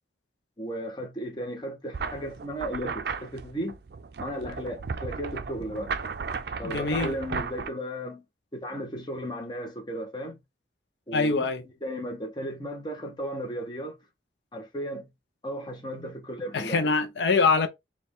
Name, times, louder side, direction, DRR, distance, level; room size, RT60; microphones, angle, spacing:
voice 1, 0.6-3.8 4.2-5.9 6.6-8.2 8.5-10.4 11.1-11.4 11.8-14.0 14.5-15.1 15.4-16.9, equal, 25° left, 0.8 m, -35 dB
sound 1, 1.9-7.7, right 5 dB, 60° right, 0.4 m, -35 dB
voice 2, 6.6-7.1 11.1-11.6 16.5-17.7, left 4 dB, 75° left, 0.6 m, -24 dB
4.2 x 2.3 x 3.5 m
head